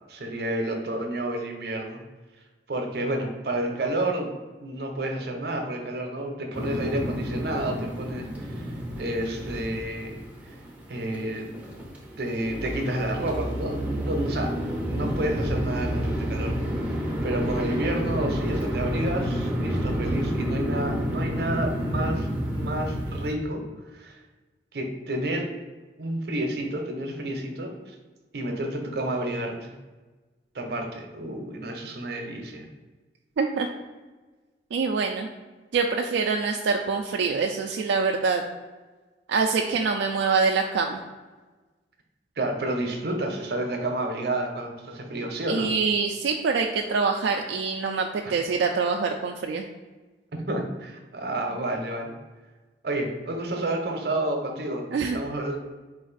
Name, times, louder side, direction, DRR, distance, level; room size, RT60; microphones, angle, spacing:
voice 1, 0.1-2.0 2.7-4.3 4.6-10.2 10.9-11.5 12.2-14.5 14.9-16.5 16.9-17.0 17.2-22.3 22.5-23.6 23.9-24.2 24.7-25.5 26.0-27.9 28.3-29.7 30.5-32.6 42.4-45.7 48.2-48.3 50.5-52.1 52.8-55.6, right 1 dB, 60° right, 3 dB, 0.7 m, -30 dB
sound 1, 6.5-23.3, equal, 10° right, 0.5 m, -29 dB
voice 2, 33.4-33.7 34.7-35.3 35.7-38.4 39.3-41.0 45.5-49.7 54.9-55.2, right 4 dB, 85° right, 2 dB, 0.3 m, -25 dB
4.0 x 2.5 x 3.9 m, 1.3 s
head